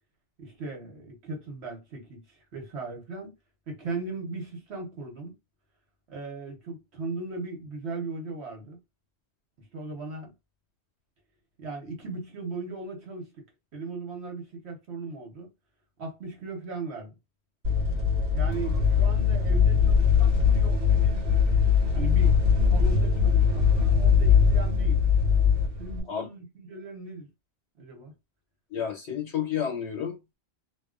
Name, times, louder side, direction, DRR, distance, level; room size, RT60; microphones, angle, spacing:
voice 1, 0.4-3.3 3.7-5.3 6.1-8.8 9.6-10.3 11.6-13.4 13.7-15.5 16.0-17.2 18.3-21.3 21.9-25.0 25.8-27.3 27.8-28.1, right 3 dB, 75° right, 1.2 m, -38 dB
sound 1, 17.6-26.0, left 6 dB, 55° right, 1.3 m, -21 dB
voice 2, 28.7-30.4, left 8 dB, 85° left, 1.2 m, -31 dB
2.7 x 2.3 x 2.4 m
omnidirectional pair, 1.1 m